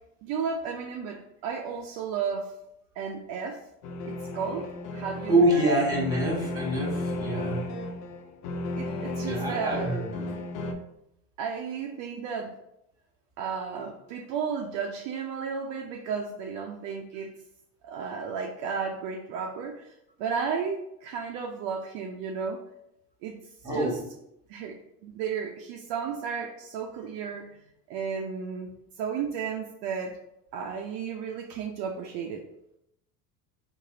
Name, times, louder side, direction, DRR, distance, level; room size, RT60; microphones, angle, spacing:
voice 1, 0.2-2.5 3.0-3.6 4.0-4.6 4.9-5.6 8.8-9.9 11.4-12.5 13.4-17.3 17.8-22.6 23.2-23.3 23.7-23.9 24.5-24.8 25.0-27.5 27.9-28.7 29.0-30.1 30.5-32.4, right 6 dB, 60° right, 2 dB, 0.6 m, -33 dB
sound 1, 3.8-10.7, left 2 dB, 55° left, 0.6 m, -34 dB
voice 2, 5.3-7.6 9.2-10.2 23.6-24.0, right 1 dB, 5° right, -2 dB, 1.4 m, -25 dB
3.1 x 2.6 x 3.7 m, 0.81 s
supercardioid pair, 95°, 49 cm